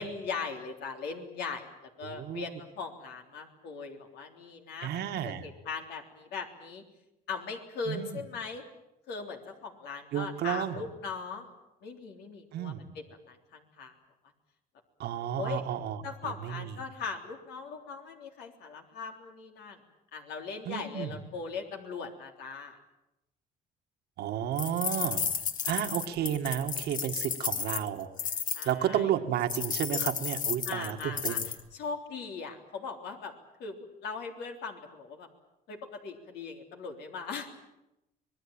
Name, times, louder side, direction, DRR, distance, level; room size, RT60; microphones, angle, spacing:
voice 1, 0.0-6.8 7.3-8.6 9.1-11.5 11.8-13.9 15.4-15.6 16.0-19.8 20.1-22.8 28.5-29.1 30.7-33.3 33.6-35.3 35.7-37.5, left 5 dB, 80° left, 3 dB, 3.5 m, -39 dB
voice 2, 2.0-2.5 4.8-5.5 7.9-8.2 10.1-10.8 12.5-12.9 15.0-16.7 20.7-21.1 24.2-25.2 25.6-28.1 28.7-31.4, right 10 dB, 75° right, 6 dB, 1.8 m, -32 dB
sound 1, 24.6-28.7 29.5-31.6, left 7 dB, 50° left, 1.8 m, -33 dB
25.5 x 19.5 x 8.9 m, 0.90 s
cardioid pair, 110°, 17 cm